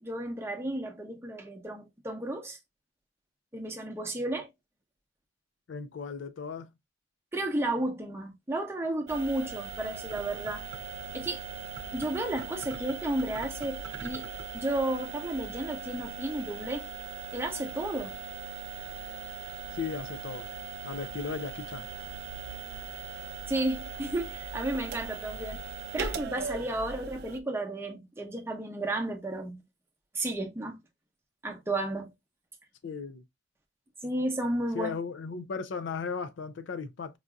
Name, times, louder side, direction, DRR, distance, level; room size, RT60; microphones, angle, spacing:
voice 1, 0.0-2.6 3.5-4.5 7.3-10.6 11.1-11.4 11.9-14.2 14.5-16.9 17.3-18.2 23.5-25.6 25.9-29.6 30.1-30.8 31.4-32.1 34.0-34.9, right 1 dB, 15° right, 0.7 m, -33 dB
voice 2, 5.7-6.7 19.7-20.5 20.8-21.9 32.8-33.2 34.7-37.2, left 5 dB, 65° left, 0.4 m, -36 dB
sound 1, 9.1-27.4, right 5 dB, 55° right, 0.4 m, -40 dB
4.7 x 2.6 x 2.2 m
head